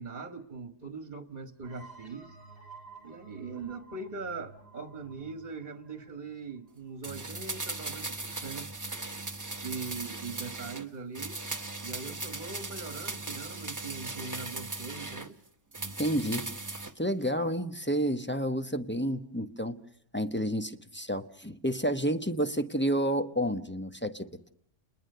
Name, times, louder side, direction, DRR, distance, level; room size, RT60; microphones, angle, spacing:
voice 1, 0.0-2.4 3.0-8.7 9.5-11.4 11.8-15.4, right 4 dB, 40° right, 10 dB, 1.5 m, -41 dB
sound 1, 1.6-7.1, right 3 dB, 35° left, 4.5 m, -52 dB
sound 2, 7.0-10.9 11.1-15.3 15.7-16.9 17.2-17.3, right 2 dB, 15° right, 0.9 m, -38 dB
voice 2, 16.0-16.5 17.0-19.8 20.1-24.5, equal, 10° left, 9 dB, 0.9 m, -30 dB
29.5 x 20.5 x 6.7 m, 0.70 s
omnidirectional pair, 1.3 m